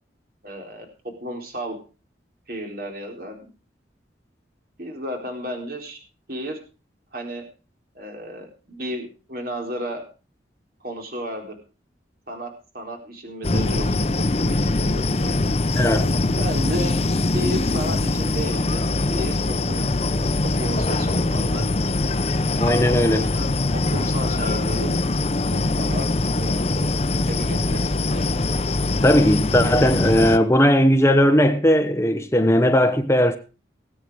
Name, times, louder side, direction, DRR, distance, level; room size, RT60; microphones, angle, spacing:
voice 1, 0.4-0.9 1.2-1.8 2.5-3.5 4.8-6.0 6.3-6.6 7.1-7.4 7.9-10.0 10.8-11.6 12.3-13.9 14.4-15.4 16.4-17.0 17.3-20.2 20.6-21.6 22.6-24.9 25.5-27.0 27.3-28.3, equal, 55° right, 4.1 m, -33 dB
sound 1, 13.4-30.4, left 2 dB, 35° left, 0.7 m, -22 dB
voice 2, 15.7-16.1 22.6-23.3 29.0-33.4, equal, 15° left, 1.1 m, -18 dB
19.5 x 8.6 x 4.8 m
head